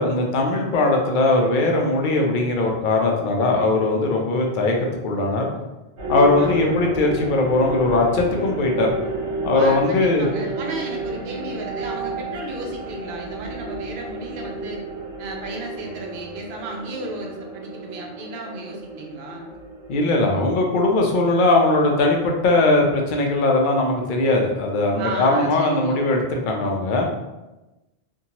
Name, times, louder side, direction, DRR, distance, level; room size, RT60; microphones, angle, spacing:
voice 1, 0.0-4.8 5.0-5.5 6.1-8.9 9.4-10.3 19.9-27.1, left 2 dB, 60° left, 1 dB, 0.6 m, -20 dB
sound 1, 6.0-22.5, right 1 dB, 80° right, 1.1 m, -31 dB
voice 2, 6.4-6.8 9.5-14.8 15.2-19.5 25.0-26.0, right 2 dB, 60° right, 0 dB, 0.7 m, -34 dB
2.6 x 2.2 x 2.8 m, 1.0 s
omnidirectional pair, 1.1 m